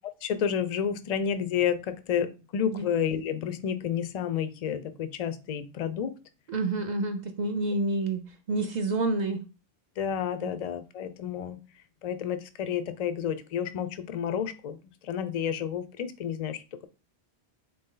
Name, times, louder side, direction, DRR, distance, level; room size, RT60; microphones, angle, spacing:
voice 1, 0.2-6.1 10.0-11.6 12.0-16.9, left 8 dB, 55° left, 12 dB, 0.4 m, -30 dB
voice 2, 6.5-9.4 10.4-10.5, right 2 dB, 55° right, 5 dB, 0.5 m, -29 dB
4.2 x 3.2 x 3.7 m, 0.31 s
omnidirectional pair, 1.2 m